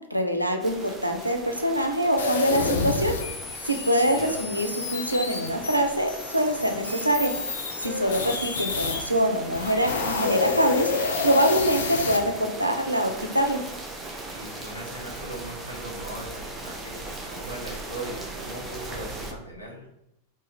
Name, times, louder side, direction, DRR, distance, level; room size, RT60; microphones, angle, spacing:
voice 1, 0.1-3.1 3.7-7.3 7.8-13.6, equal, 90° right, 4 dB, 0.3 m, -24 dB
sound 1, 0.6-19.3, right 2 dB, 15° right, 0.4 m, -39 dB
sound 2, 2.2-9.0 9.5-12.2, left 4 dB, 65° left, 0.4 m, -29 dB
voice 2, 14.3-19.9, right 1 dB, 90° left, -3 dB, 0.7 m, -39 dB
2.4 x 2.1 x 3.3 m, 0.80 s
figure-of-eight pair, 90°, 0 cm